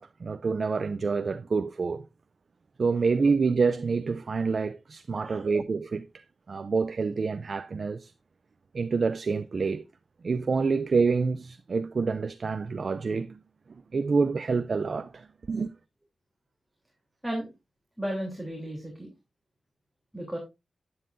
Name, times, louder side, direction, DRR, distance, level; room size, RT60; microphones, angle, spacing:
voice 1, 0.0-2.1 2.8-8.1 8.7-9.8 10.2-13.4 13.9-15.7, right 4 dB, 50° right, 0.5 m, -27 dB
voice 2, 5.2-5.5 17.2-17.5 18.0-19.1 20.1-20.4, equal, ahead, 3.2 m, -34 dB
11.0 x 9.7 x 2.6 m
wide cardioid pair, 130°, 0 cm